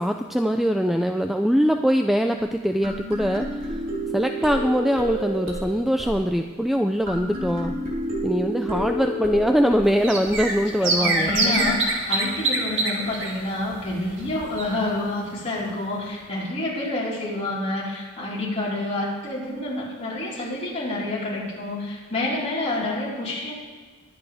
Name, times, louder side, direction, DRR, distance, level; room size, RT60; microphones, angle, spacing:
voice 1, 0.0-3.8 4.1-7.7 8.2-11.5, equal, ahead, 5 dB, 0.4 m, -22 dB
sound 1, 2.4-2.5 2.8-11.7, equal, 45° right, 3.5 m, -31 dB
sound 2, 9.9-15.0 15.3-15.4 15.7-15.8, right 3 dB, 60° right, 2.3 m, -26 dB
voice 2, 10.8-23.5, left 2 dB, 30° left, -8 dB, 4.4 m, -28 dB
22.5 x 9.3 x 3.5 m, 1.5 s
head